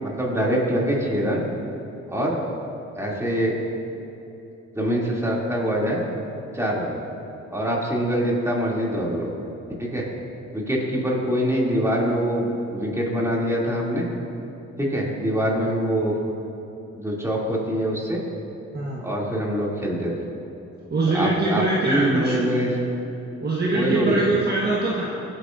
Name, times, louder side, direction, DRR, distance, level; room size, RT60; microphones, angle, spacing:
voice 1, 0.0-1.4 2.1-2.4 2.9-3.6 4.7-6.0 6.5-7.0 7.5-9.3 9.8-10.1 10.5-14.1 14.8-16.3 16.9-18.2 19.0-20.1 21.1-22.7 23.7-24.3, equal, 10° right, -4 dB, 2.7 m, -24 dB
voice 2, 18.7-19.0 20.9-22.4 23.4-25.0, right 2 dB, 35° right, -4 dB, 1.4 m, -23 dB
22.5 x 8.4 x 2.6 m, 2.9 s
cardioid pair, 90°, 30 cm